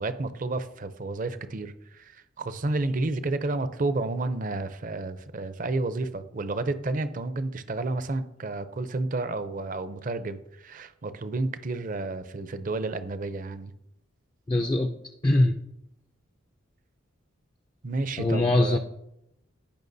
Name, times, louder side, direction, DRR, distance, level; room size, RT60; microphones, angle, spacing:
voice 1, 0.0-13.7 17.8-18.8, right 2 dB, 40° right, 12 dB, 0.5 m, -31 dB
voice 2, 14.5-14.9 15.2-15.6 18.2-18.8, left 1 dB, 20° left, 5 dB, 0.4 m, -22 dB
16.0 x 5.5 x 2.7 m, 0.81 s
head